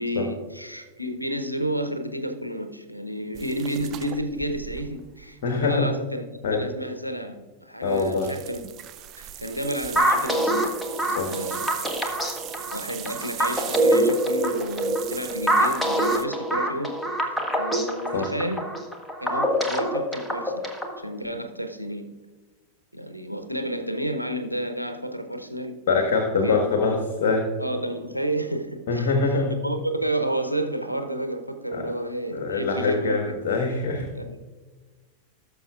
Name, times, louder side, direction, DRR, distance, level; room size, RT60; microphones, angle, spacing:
voice 1, 0.0-6.2 6.5-8.6 9.2-11.9 12.7-17.0 17.6-18.7 19.2-20.7 21.0-22.1 22.9-25.8 26.4-27.1 27.6-33.3 34.1-34.4, right 1 dB, 90° left, 6 dB, 0.8 m, -31 dB
sound 1, 3.3-5.6 7.9-16.2, right 12 dB, 35° right, 0.5 m, -39 dB
voice 2, 5.4-5.9 6.4-6.6 7.8-8.3 11.1-11.3 18.1-18.3 25.9-27.4 28.9-29.5 31.7-31.9 32.3-34.1, left 4 dB, 55° left, 3 dB, 1.3 m, -24 dB
sound 2, 10.0-21.0, right 1 dB, 5° left, 1.2 m, -25 dB
17.5 x 6.8 x 2.4 m, 1.3 s
figure-of-eight pair, 90°, 0 cm